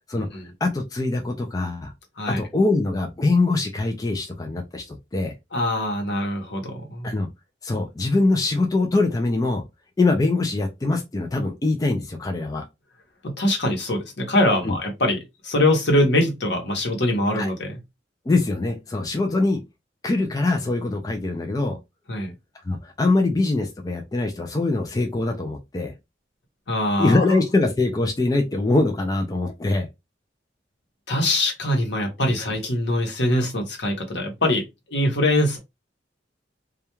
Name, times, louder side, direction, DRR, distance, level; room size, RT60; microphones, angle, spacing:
voice 1, 0.6-1.9 2.3-5.3 7.0-7.3 7.6-9.6 10.0-12.6 14.6-14.8 17.3-17.5 18.3-19.6 20.0-21.8 22.7-25.9 27.0-29.9, left 2 dB, 20° left, 0.3 m, -23 dB
voice 2, 5.5-7.1 13.2-17.8 22.1-22.3 26.7-27.2 31.1-34.6 34.9-35.6, left 1 dB, 65° left, 0.9 m, -23 dB
2.3 x 2.2 x 2.9 m
head